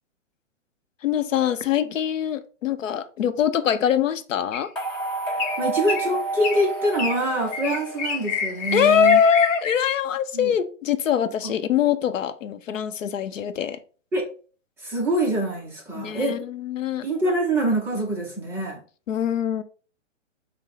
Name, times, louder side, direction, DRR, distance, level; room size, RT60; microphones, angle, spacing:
voice 1, 1.0-4.7 8.7-13.8 15.9-17.0 19.1-19.6, left 8 dB, 90° left, 0.7 m, -23 dB
sound 1, 4.5-4.8 5.4-5.6 5.9-6.1 6.4-6.7 7.0-7.2 7.5-9.7, left 5 dB, 35° left, 0.9 m, -28 dB
sound 2, 4.8-9.0, right 3 dB, 10° left, 1.1 m, -30 dB
voice 2, 5.6-9.2 10.3-10.5 11.4-11.5 14.1-14.3 14.8-16.4 17.0-18.8, right 1 dB, 5° right, 0.5 m, -25 dB
6.3 x 2.1 x 4.0 m
hypercardioid pair, 145°, 37 cm